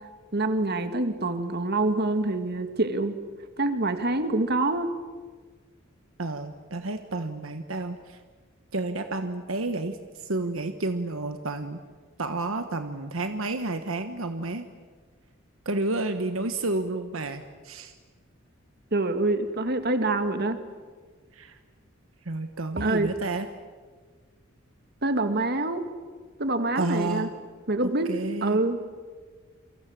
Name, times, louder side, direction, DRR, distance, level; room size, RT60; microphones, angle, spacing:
voice 1, 0.3-3.2 3.6-4.9 18.9-20.6 22.8-23.1 25.0-25.9 26.4-27.3 27.7-28.1 28.4-28.8, right 2 dB, 50° right, 8 dB, 2.1 m, -26 dB
voice 2, 6.2-8.2 8.7-11.8 12.2-14.7 15.6-17.9 21.3-21.6 22.2-23.5 26.7-27.3 27.8-28.6, right 2 dB, 75° right, 8 dB, 1.3 m, -30 dB
29.0 x 24.0 x 7.6 m, 1.5 s
head